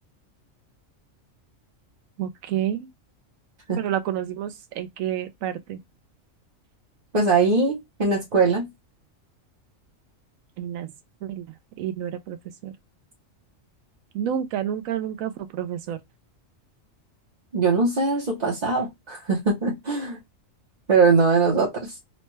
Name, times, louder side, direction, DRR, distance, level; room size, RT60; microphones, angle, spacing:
voice 1, 2.2-2.9 3.8-5.8 10.6-10.9 11.2-11.5 11.8-12.4 12.6-12.7 14.1-16.0, right 10 dB, 85° right, 1.0 m, -29 dB
voice 2, 7.1-8.7 17.5-20.2 20.9-21.9, right 4 dB, 40° right, 0.8 m, -21 dB
4.0 x 2.2 x 3.0 m
omnidirectional pair, 1.4 m